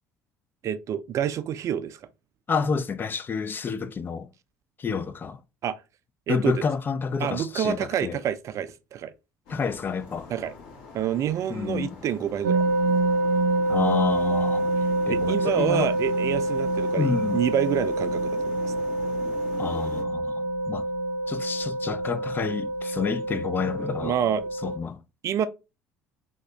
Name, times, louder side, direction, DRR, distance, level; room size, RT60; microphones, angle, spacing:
voice 1, 0.6-2.0 5.6-5.8 6.3-6.6 7.2-9.1 10.3-10.5 10.9-12.6 15.1-18.7 24.0-24.5 25.2-25.5, right 9 dB, 45° right, 0.4 m, -28 dB
voice 2, 2.5-4.3 4.8-5.4 6.3-8.2 9.5-10.3 11.5-12.0 13.7-15.9 17.0-17.4 19.6-20.9 21.3-24.2 24.6-25.0, left 5 dB, 25° left, 0.4 m, -29 dB
sound 1, 9.5-20.0, left 4 dB, 60° left, 1.4 m, -43 dB
sound 2, 12.4-24.8, right 2 dB, 70° right, 0.9 m, -26 dB
3.5 x 2.7 x 3.2 m
figure-of-eight pair, 55°, 8 cm